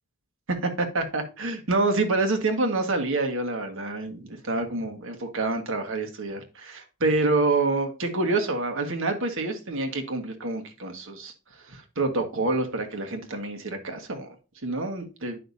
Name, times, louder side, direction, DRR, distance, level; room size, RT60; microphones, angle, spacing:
voice 1, 0.5-11.3 11.7-14.3 14.6-15.4, right 2 dB, 65° right, 4 dB, 1.6 m, -27 dB
10.0 x 5.8 x 2.7 m, 0.33 s
head